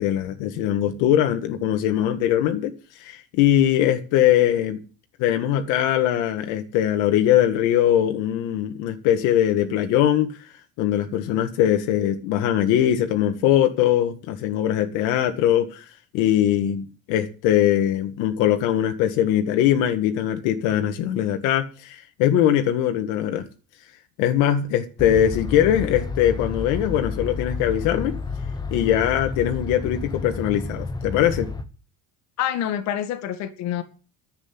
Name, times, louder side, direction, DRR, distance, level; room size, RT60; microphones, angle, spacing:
voice 1, 0.0-2.7 3.0-4.8 5.2-10.3 10.8-15.9 16.1-23.4 24.2-28.2 28.7-31.5, left 11 dB, 80° left, 1.7 m, -21 dB
sound 1, 25.0-31.6, left 4 dB, 15° left, 1.3 m, -31 dB
voice 2, 32.4-33.8, left 11 dB, 60° left, 2.0 m, -27 dB
10.5 x 8.1 x 9.5 m
cardioid pair, 145°, 30 cm